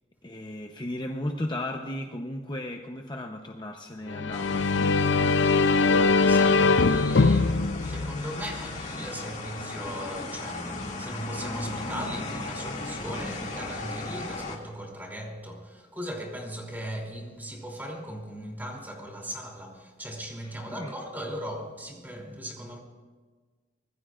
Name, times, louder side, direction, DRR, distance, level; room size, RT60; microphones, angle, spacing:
voice 1, 0.2-5.2 20.7-20.9, left 1 dB, 25° left, 0.9 m, -35 dB
sound 1, 4.1-8.8, left 4 dB, 85° left, 0.6 m, -22 dB
sound 2, 4.3-14.6, left 2 dB, 40° left, 2.5 m, -37 dB
voice 2, 5.4-22.8, equal, 10° right, 3.2 m, -38 dB
24.5 x 20.5 x 2.6 m
head